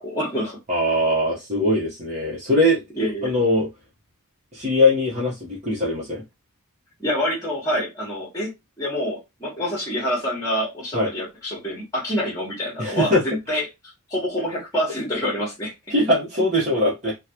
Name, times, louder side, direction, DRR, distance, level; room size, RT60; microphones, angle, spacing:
voice 1, 0.0-0.6 3.0-3.4 7.0-8.5 8.8-13.6 14.1-15.7, equal, 15° left, 1.3 m, -26 dB
voice 2, 0.7-2.8 3.2-3.7 4.5-6.2 10.9-11.1 12.8-13.2 15.9-17.1, left 1 dB, 35° right, 1.1 m, -21 dB
3.7 x 2.3 x 2.9 m
head